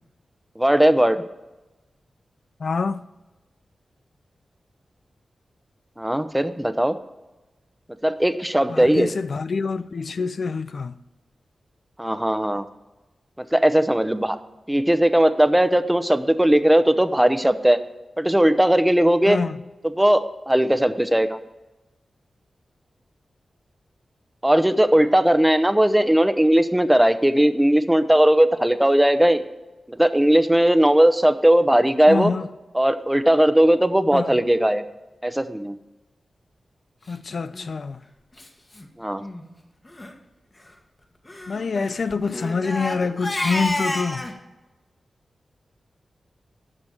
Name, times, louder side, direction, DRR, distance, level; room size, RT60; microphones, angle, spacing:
voice 1, 0.6-1.2 6.0-7.0 8.0-9.1 12.0-12.7 13.5-14.4 14.7-17.8 18.2-19.4 19.8-21.4 24.4-29.4 29.9-32.3 32.7-34.8 35.2-35.8 39.0-39.2, right 1 dB, 10° right, 0.8 m, -18 dB
voice 2, 2.6-3.0 8.7-10.9 19.3-19.5 32.1-32.4 34.1-34.3 37.1-38.0 41.5-44.2, left 4 dB, 65° left, 0.4 m, -26 dB
Crying sobbing, 37.5-37.7 38.4-38.5 38.7-38.9 39.2-39.4 39.9-40.1 41.3-44.3, left 1 dB, 35° left, 1.5 m, -30 dB
8.8 x 6.2 x 7.8 m
cardioid pair, 45°, 0 cm